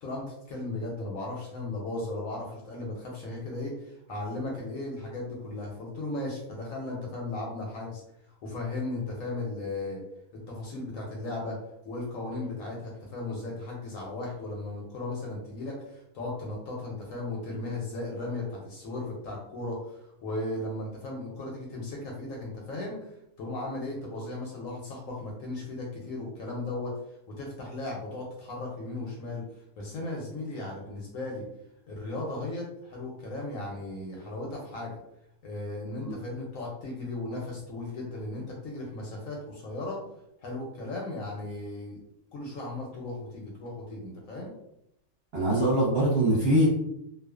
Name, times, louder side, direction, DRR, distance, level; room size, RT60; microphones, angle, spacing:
voice 1, 0.0-8.0 8.4-10.0 10.5-11.6 11.9-23.0 23.4-26.9 27.3-29.4 29.8-31.4 31.9-35.0 35.4-40.0 40.4-42.0 42.3-44.5, left 2 dB, 70° left, -2 dB, 0.9 m, -36 dB
voice 2, 45.3-46.7, right 1 dB, 50° right, -6 dB, 0.9 m, -23 dB
2.3 x 2.3 x 2.3 m, 0.78 s
omnidirectional pair, 1.7 m